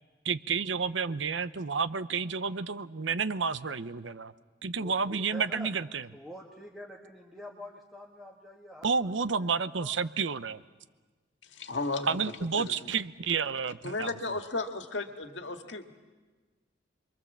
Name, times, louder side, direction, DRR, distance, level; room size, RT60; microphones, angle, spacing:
voice 1, 0.2-4.3 4.6-6.1 8.8-10.6 12.1-14.3, right 5 dB, 85° right, 13 dB, 0.8 m, -30 dB
voice 2, 4.8-5.7 6.1-9.1 9.4-9.5 9.8-10.1, equal, ahead, -3 dB, 1.6 m, -46 dB
voice 3, 11.5-12.1 12.6-12.7 13.8-15.9, left 3 dB, 75° left, 5 dB, 1.8 m, -34 dB
28.0 x 23.0 x 7.3 m, 1.3 s
head